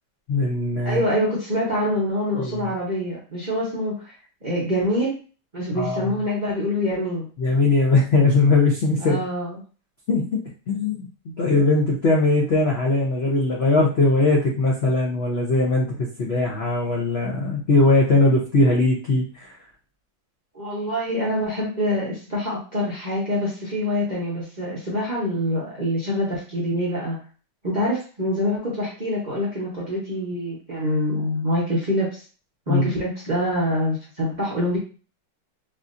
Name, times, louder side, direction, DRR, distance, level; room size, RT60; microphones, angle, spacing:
voice 1, 0.3-1.0 2.4-2.7 5.7-6.1 7.4-9.2 10.1-19.5 32.7-32.9, left 2 dB, 70° left, -3 dB, 0.6 m, -20 dB
voice 2, 0.8-4.1 4.4-5.2 5.5-7.3 9.0-9.6 20.5-27.2 27.6-32.2 32.7-34.8, left 1 dB, 40° right, -6 dB, 0.6 m, -25 dB
3.5 x 2.6 x 2.5 m, 0.36 s
omnidirectional pair, 2.0 m